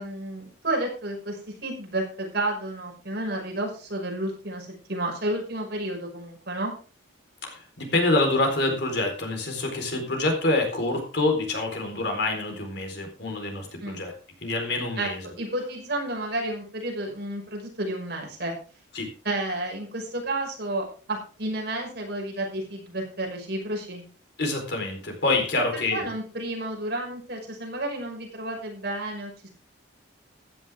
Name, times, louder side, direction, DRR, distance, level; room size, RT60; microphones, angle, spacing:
voice 1, 0.0-6.7 13.8-14.0 15.0-15.1 15.4-18.5 19.2-24.0 25.9-29.5, right 1 dB, 55° right, 0 dB, 5.8 m, -31 dB
voice 2, 7.4-14.1 14.4-15.3 18.9-19.1 24.4-26.1, left 2 dB, 55° left, 4 dB, 4.1 m, -26 dB
15.5 x 11.0 x 3.6 m, 0.38 s
head